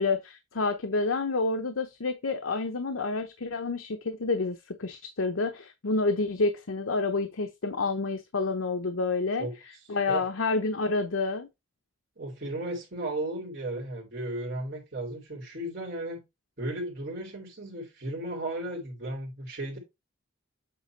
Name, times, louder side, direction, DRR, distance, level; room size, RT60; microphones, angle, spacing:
voice 1, 0.0-9.5 9.9-11.5, left 3 dB, 80° left, 0.8 m, -29 dB
voice 2, 12.2-16.2 16.6-19.8, right 1 dB, 50° right, 2.5 m, -35 dB
7.9 x 3.3 x 4.4 m
head